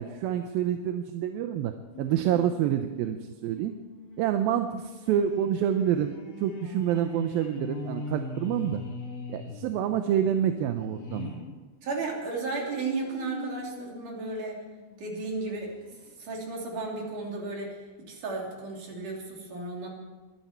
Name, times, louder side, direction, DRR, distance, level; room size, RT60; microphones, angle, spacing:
voice 1, 0.0-3.7 4.2-8.8 9.3-11.4, right 10 dB, 75° right, 7 dB, 2.4 m, -28 dB
sound 1, 1.9-11.5 12.0-15.0 15.6-15.7 15.9-16.0, left 3 dB, 45° left, 3.2 m, -42 dB
voice 2, 11.8-14.6 15.0-15.7 16.2-19.9, right 3 dB, 55° right, -1 dB, 4.5 m, -34 dB
22.0 x 14.0 x 4.5 m, 1.3 s
omnidirectional pair, 4.5 m